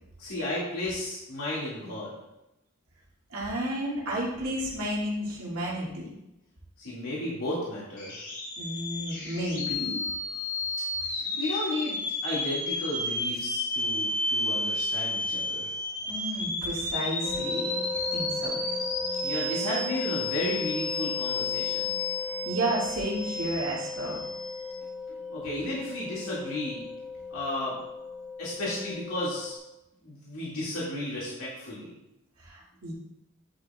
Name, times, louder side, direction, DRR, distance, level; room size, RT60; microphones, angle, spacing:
voice 1, 0.2-2.1 6.8-8.1 11.1-15.7 19.2-22.0 25.3-26.9 27.3-27.8 28.4-29.6 30.0-31.9, left 1 dB, 75° left, -7 dB, 2.2 m, -33 dB
voice 2, 3.3-6.1 8.6-9.9 16.1-17.7 18.1-18.6 22.4-24.2 25.4-25.5 32.4-32.9, right 1 dB, 80° right, -6 dB, 2.3 m, -32 dB
sound 1, 8.0-24.7, left 2 dB, 55° left, 2.9 m, -32 dB
sound 2, 17.2-29.6, left 4 dB, 20° right, 1.9 m, -37 dB
10.5 x 7.6 x 2.4 m, 0.91 s
head